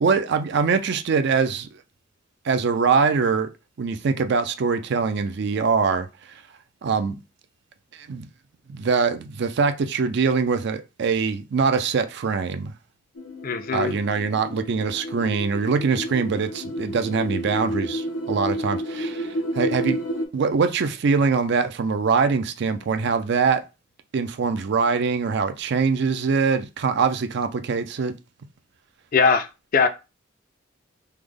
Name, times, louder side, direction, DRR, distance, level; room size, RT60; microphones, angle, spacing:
voice 1, 0.0-1.7 2.4-3.5 3.8-6.4 6.8-7.2 7.9-8.3 8.7-12.7 13.7-20.0 20.3-23.6 24.1-28.2, right 5 dB, 60° right, 0.4 m, -23 dB
sound 1, 13.2-20.3, equal, 80° left, 0.7 m, -31 dB
voice 2, 13.4-13.9 29.1-29.5 29.7-29.9, left 5 dB, 45° left, 0.4 m, -20 dB
3.3 x 2.1 x 3.5 m
head